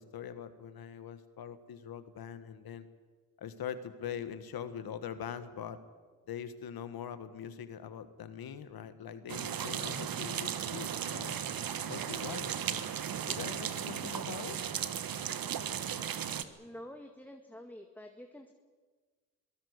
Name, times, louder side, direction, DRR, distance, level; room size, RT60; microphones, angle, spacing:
voice 1, 0.0-2.9 3.4-5.8 6.3-11.4 11.9-13.0 13.2-14.6, left 8 dB, 75° left, 11 dB, 1.6 m, -43 dB
sound 1, 9.3-16.4, right 8 dB, 70° right, 1.3 m, -36 dB
voice 2, 16.4-18.5, left 1 dB, 5° left, 4 dB, 1.9 m, -48 dB
22.5 x 18.0 x 8.1 m, 1.4 s
supercardioid pair, 50°, 36 cm